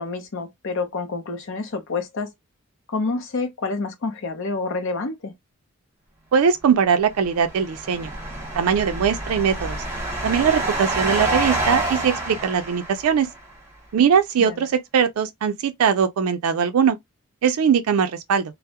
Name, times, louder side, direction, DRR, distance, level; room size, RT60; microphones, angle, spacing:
voice 1, 0.0-2.3 2.9-5.3 14.4-14.7, left 3 dB, 60° left, 0.6 m, -28 dB
voice 2, 6.3-8.1 8.5-9.8 10.2-13.3 13.9-17.0 17.4-18.4, right 7 dB, 80° right, 0.4 m, -20 dB
sound 1, 7.1-13.4, right 1 dB, 15° right, 0.9 m, -27 dB
2.2 x 2.0 x 2.7 m
head